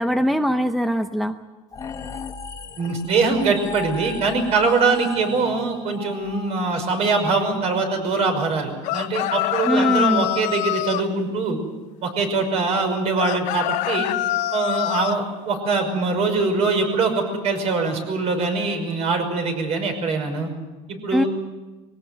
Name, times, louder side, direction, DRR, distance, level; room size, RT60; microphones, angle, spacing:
voice 1, 0.0-1.4 9.6-10.3 21.1-21.2, equal, ahead, 9 dB, 0.7 m, -21 dB
sound 1, 1.7-7.2, left 4 dB, 25° left, 1.3 m, -36 dB
voice 2, 2.8-11.6 12.0-14.1 14.5-20.5 20.9-21.3, right 4 dB, 50° right, 5 dB, 5.6 m, -23 dB
sound 2, 8.8-11.1 13.2-15.2, left 17 dB, 60° left, 0.6 m, -25 dB
21.0 x 18.5 x 9.3 m, 1.2 s
cardioid pair, 140°, 14 cm